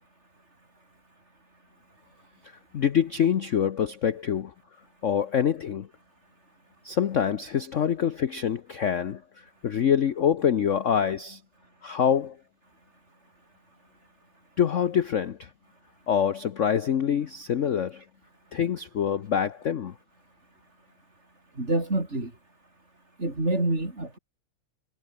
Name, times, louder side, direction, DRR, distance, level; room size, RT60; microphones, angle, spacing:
voice 1, 2.7-4.5 5.0-5.9 6.8-9.2 9.6-11.4 11.8-12.4 14.6-15.5 16.1-18.0 18.5-19.9, left 8 dB, 60° left, 0.8 m, -25 dB
voice 2, 21.6-22.3 23.2-24.2, right 2 dB, 30° right, 5.6 m, -27 dB
omnidirectional pair, 2.4 m